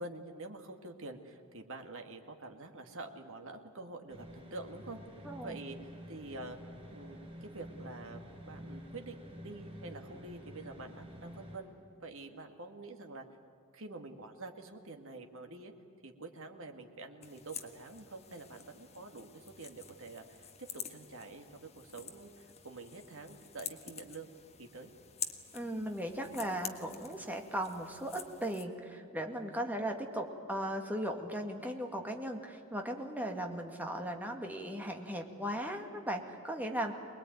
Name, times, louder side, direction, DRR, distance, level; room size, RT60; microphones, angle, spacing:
voice 1, 0.0-5.0 5.4-6.6 6.9-11.7 12.0-13.3 13.7-15.7 16.0-24.9, right 2 dB, 65° right, 4 dB, 2.1 m, -47 dB
sound 1, 4.1-11.6, equal, 30° right, 6.3 m, -49 dB
voice 2, 5.2-5.6 25.5-36.9, right 1 dB, 10° right, 2 dB, 2.0 m, -37 dB
sound 2, 17.2-28.6, left 7 dB, 30° left, 1.4 m, -48 dB
24.0 x 20.5 x 9.3 m, 2.6 s
head